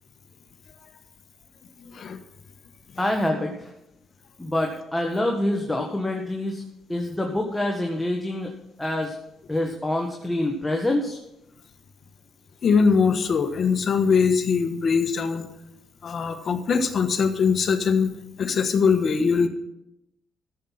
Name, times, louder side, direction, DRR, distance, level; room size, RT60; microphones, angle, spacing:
voice 1, 3.0-3.7 4.4-6.6 6.9-8.5 8.8-9.1 9.5-11.2, left 1 dB, 10° left, 1 dB, 1.6 m, -26 dB
voice 2, 12.6-15.5 16.0-18.1 18.4-19.5, left 5 dB, 50° left, 7 dB, 1.4 m, -21 dB
13.5 x 7.9 x 5.8 m, 0.85 s
cardioid pair, 90°, 0 cm